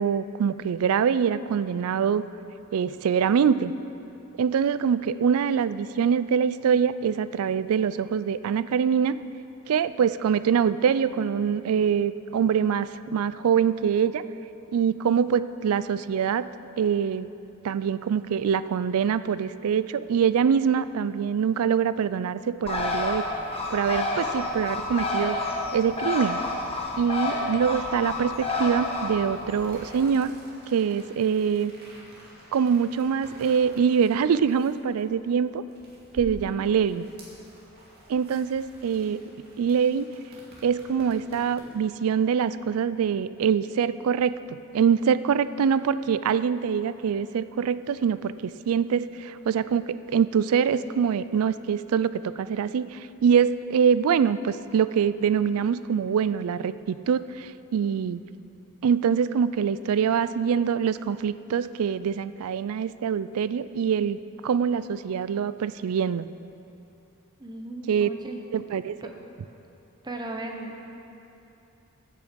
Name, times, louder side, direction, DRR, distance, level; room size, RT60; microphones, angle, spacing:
voice 1, 0.0-2.2 2.7-3.7 4.4-9.2 9.7-14.2 14.7-16.5 16.8-17.3 17.6-23.2 23.7-25.4 25.7-26.4 27.0-30.3 30.7-31.7 32.5-35.6 36.1-37.0 38.1-39.2 39.6-40.1 40.6-44.3 44.7-58.2 58.8-64.2 64.4-66.3 67.9-68.1 68.5-69.0, right 7 dB, 70° right, 14 dB, 0.3 m, -24 dB
Bird, 22.7-30.1, left 2 dB, 25° left, 1.1 m, -29 dB
sound 1, 29.5-41.9, equal, 45° right, 2.2 m, -49 dB
voice 2, 36.3-36.6 67.4-68.4 69.0-69.1 70.0-70.9, right 1 dB, 20° right, 2 dB, 0.9 m, -37 dB
14.5 x 6.6 x 5.2 m, 2.8 s
head